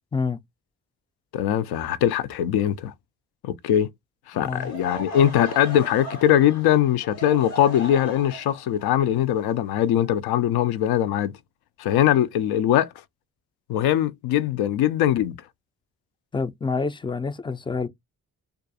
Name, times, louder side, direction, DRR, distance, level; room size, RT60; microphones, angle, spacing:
voice 1, 1.3-2.9 3.4-3.9 4.3-11.3 11.8-12.9 13.7-15.4, left 11 dB, 70° left, 0.5 m, -21 dB
voice 2, 4.3-4.7 16.3-17.9, left 4 dB, 15° left, 0.4 m, -27 dB
Laughter / Crowd, 4.4-10.3, left 1 dB, 90° left, 1.1 m, -38 dB
2.4 x 2.2 x 2.6 m
hypercardioid pair, 40°, 39 cm